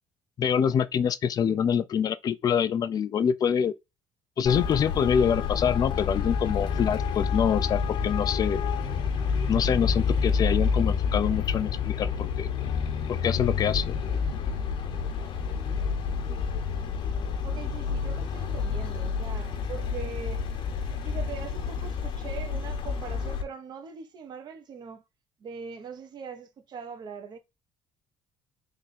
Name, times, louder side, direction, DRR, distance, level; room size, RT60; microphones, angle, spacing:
voice 1, 0.4-3.7 4.4-8.6 9.5-12.5 13.1-13.9, left 8 dB, 40° left, 0.5 m, -25 dB
Traffic noise roadway noise, 4.5-23.4, left 6 dB, 60° left, 1.0 m, -29 dB
voice 2, 17.4-20.4 21.0-25.0 25.4-27.4, right 6 dB, 45° right, 1.0 m, -41 dB
3.6 x 2.7 x 4.1 m
cardioid pair, 110°, 10 cm